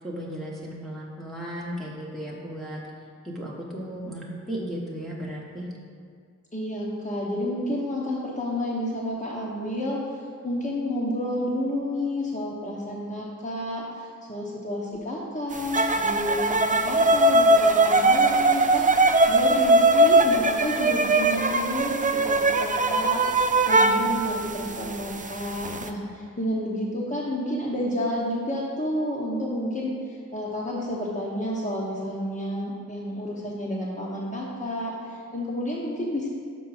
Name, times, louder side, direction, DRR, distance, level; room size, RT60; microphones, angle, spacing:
voice 1, 0.0-2.8 3.2-5.7, equal, ahead, -5 dB, 1.1 m, -35 dB
voice 2, 6.5-10.0 10.4-36.3, left 1 dB, 25° left, -6 dB, 1.0 m, -30 dB
sound 1, 15.7-25.1 25.4-25.9, right 2 dB, 25° right, 0.4 m, -20 dB
6.1 x 4.8 x 4.8 m, 2.2 s
wide cardioid pair, 60°, 32 cm